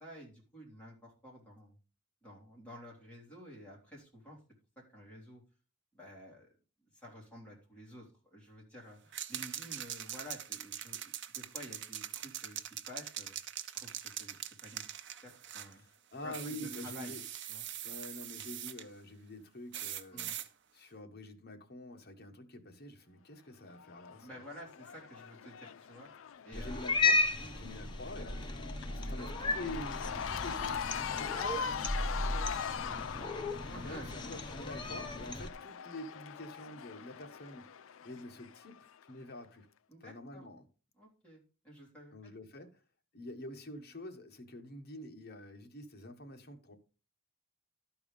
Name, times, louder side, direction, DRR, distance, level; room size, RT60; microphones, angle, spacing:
voice 1, 0.0-1.8 2.2-4.4 4.7-5.4 5.9-6.5 6.9-12.6 12.9-13.4 13.7-14.9 15.2-15.8 16.2-17.2 17.5-17.6 20.1-20.3 24.2-26.1 26.4-26.9 27.4-27.7 29.0-29.5 31.3-34.4 39.9-40.4 41.0-41.4 41.6-42.3, equal, 5° left, 3.4 m, -51 dB
sound 1, 9.1-15.7 16.3-18.8 19.7-20.5, right 10 dB, 60° right, 0.7 m, -42 dB
voice 2, 16.1-17.2 17.8-20.3 20.7-24.3 26.5-27.2 27.5-28.5 28.9-31.4 33.8-37.7 38.0-39.7 40.0-40.6 42.1-42.7 43.1-46.8, left 1 dB, 50° left, 1.4 m, -46 dB
Cheering / Crowd, 23.7-39.0, left 7 dB, 70° left, 0.4 m, -42 dB
Cat, 26.5-35.5, left 3 dB, 20° left, 0.9 m, -35 dB
12.0 x 4.8 x 5.3 m
head